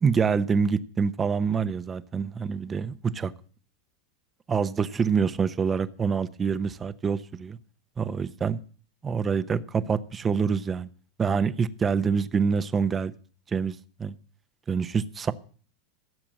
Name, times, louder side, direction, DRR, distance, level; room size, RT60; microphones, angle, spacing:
voice 1, 0.0-3.3 4.5-7.6 8.0-8.6 9.0-10.9 11.2-13.1 13.5-14.1 14.7-15.3, right 6 dB, 25° right, 0.8 m, -26 dB
15.5 x 7.4 x 7.6 m
hypercardioid pair, 100°, 0 cm